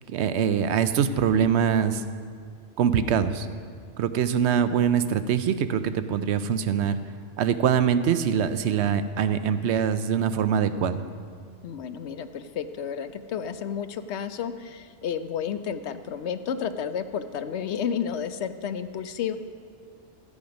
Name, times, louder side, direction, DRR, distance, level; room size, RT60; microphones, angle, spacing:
voice 1, 0.1-2.0 2.8-3.5 4.0-7.0 7.4-11.0, right 8 dB, 70° right, 12 dB, 0.9 m, -23 dB
voice 2, 11.6-19.4, left 7 dB, 70° left, 11 dB, 0.9 m, -31 dB
14.0 x 8.5 x 5.2 m, 2.1 s
omnidirectional pair, 1.2 m